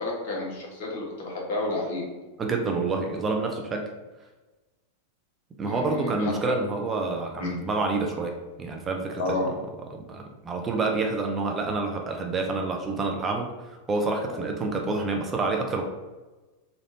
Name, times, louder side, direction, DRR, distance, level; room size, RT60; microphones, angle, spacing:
voice 1, 0.0-2.0 5.7-6.3 7.4-7.5 9.2-9.5 14.3-14.4, left 2 dB, 55° left, -2 dB, 1.0 m, -30 dB
voice 2, 2.4-3.9 5.6-9.6 9.9-15.8, right 3 dB, 20° right, 2 dB, 0.4 m, -28 dB
3.2 x 2.4 x 2.6 m, 1.2 s
figure-of-eight pair, 90°, 0 cm